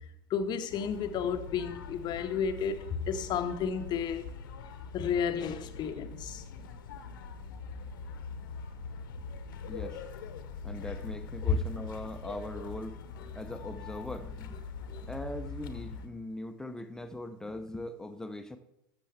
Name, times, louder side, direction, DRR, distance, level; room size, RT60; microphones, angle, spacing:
voice 1, 0.3-4.2 4.9-6.4 11.5-11.6 14.9-15.0, left 7 dB, 35° left, 0.8 m, -32 dB
sound 1, 0.7-16.1, left 4 dB, 65° left, 0.9 m, -43 dB
voice 2, 9.7-10.0 10.6-13.0 13.3-18.6, left 1 dB, 5° left, 0.7 m, -41 dB
13.0 x 6.9 x 3.3 m
figure-of-eight pair, 80°, 12 cm